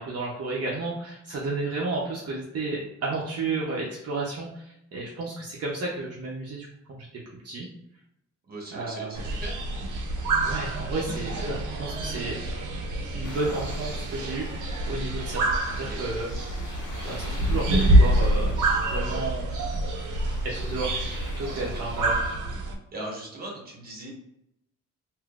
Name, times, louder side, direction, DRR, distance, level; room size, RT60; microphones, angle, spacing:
voice 1, 0.0-7.1 7.4-7.7 8.7-9.2 10.4-12.4 13.1-15.4 15.7-16.3 17.0-18.5 18.8-19.5 20.4-21.0 21.4-22.2, right 3 dB, 55° right, -5 dB, 0.8 m, -32 dB
voice 2, 8.5-9.6 10.9-11.3 15.9-16.0 21.4-21.8 22.9-24.1, right 1 dB, 30° right, -2 dB, 1.2 m, -39 dB
sound 1, 9.1-22.7, right 1 dB, 90° right, 0.8 m, -26 dB
sound 2, 13.2-22.4, left 5 dB, 80° left, 0.5 m, -47 dB
3.6 x 2.7 x 2.4 m, 0.79 s
wide cardioid pair, 140°, 30 cm